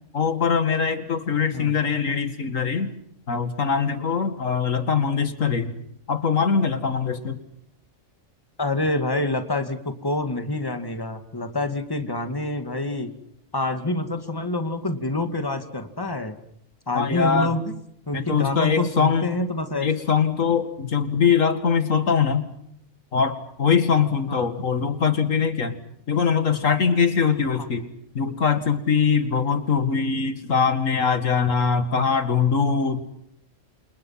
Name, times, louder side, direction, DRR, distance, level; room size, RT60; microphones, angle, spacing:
voice 1, 0.1-2.9 3.3-5.7 6.1-7.4 16.9-17.5 18.1-19.3 19.8-22.5 23.1-25.8 26.1-27.9 28.1-33.0, left 6 dB, 90° left, 10 dB, 2.5 m, -22 dB
voice 2, 8.6-13.1 13.5-16.4 16.9-17.8 18.1-19.9 24.3-24.6 27.6-27.7, left 2 dB, 15° left, 8 dB, 2.3 m, -27 dB
29.5 x 27.5 x 5.9 m, 0.70 s
omnidirectional pair, 1.3 m